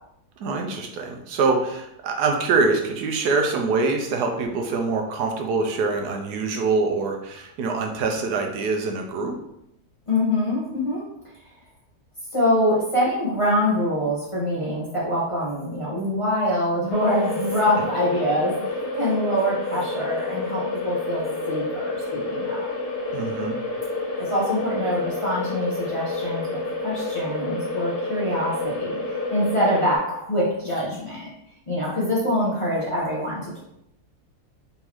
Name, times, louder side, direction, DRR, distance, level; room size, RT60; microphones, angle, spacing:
voice 1, 0.4-9.3 23.1-23.6, right 4 dB, 80° right, 2 dB, 1.2 m, -24 dB
voice 2, 10.1-11.0 12.3-22.7 24.2-31.3 31.7-33.6, equal, 20° left, -7 dB, 1.0 m, -25 dB
sound 1, 16.9-30.0, left 2 dB, 70° left, 1.8 m, -29 dB
4.1 x 3.8 x 3.0 m, 0.81 s
omnidirectional pair, 1.7 m